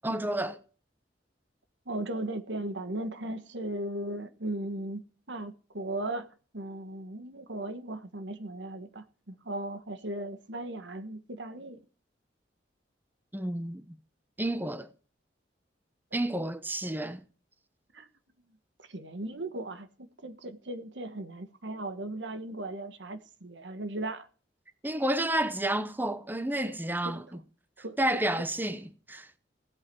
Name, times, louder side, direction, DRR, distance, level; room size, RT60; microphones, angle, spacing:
voice 1, 0.0-0.6 13.3-14.0 14.4-14.9 16.1-17.2 24.8-27.4 28.0-29.3, right 1 dB, 10° right, 0.8 m, -30 dB
voice 2, 1.9-6.3 6.5-11.8 17.9-18.1 18.9-24.3 27.0-27.2 27.8-28.0, right 1 dB, 80° right, 1.3 m, -37 dB
16.5 x 8.5 x 4.6 m
head